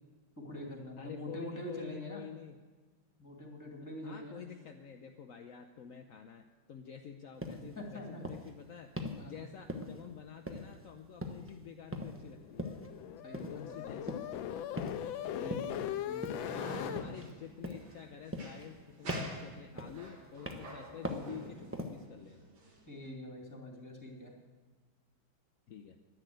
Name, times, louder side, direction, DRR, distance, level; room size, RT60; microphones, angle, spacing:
voice 1, 0.4-2.2 3.2-4.4 7.8-8.2 9.1-9.4 13.2-14.0 15.3-16.5 22.9-24.3, left 1 dB, 10° left, 0 dB, 2.2 m, -45 dB
voice 2, 1.0-2.6 4.0-8.9 9.2-12.7 13.5-14.6 15.3-15.6 16.5-22.5 25.7-26.0, left 8 dB, 65° left, 4 dB, 0.8 m, -49 dB
sound 1, 7.4-7.6 8.2-8.5 9.0-9.3 9.7-10.1 10.5-10.9 11.2-11.5 11.9-12.2 12.6-12.9 13.3-13.6 14.1-14.4 14.8-15.1 15.5-15.8 16.2-16.5 17.0-17.4 17.6-17.9 18.3-18.8 19.1-19.4 19.8-20.1 20.4-20.8 21.0-21.3 21.7-22.0, left 1 dB, 15° right, 0.4 m, -40 dB
sound 2, 12.3-17.0, left 11 dB, 80° left, 1.4 m, -39 dB
sound 3, 16.2-23.1, right 2 dB, 70° right, 2.7 m, -47 dB
10.5 x 10.5 x 7.8 m, 1.3 s
omnidirectional pair, 2.2 m